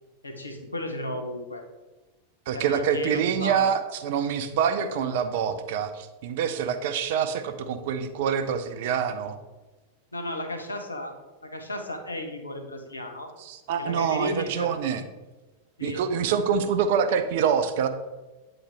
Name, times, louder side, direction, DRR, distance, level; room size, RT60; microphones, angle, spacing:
voice 1, 0.2-1.6 2.5-3.7 10.1-11.1 11.4-13.3 13.8-14.7 15.8-16.1, left 1 dB, 80° left, 4 dB, 0.8 m, -34 dB
voice 2, 2.5-9.4 13.4-15.0 15.8-17.9, right 7 dB, 50° right, 9 dB, 0.5 m, -26 dB
8.6 x 3.9 x 3.4 m, 1.1 s
figure-of-eight pair, 90°, 0 cm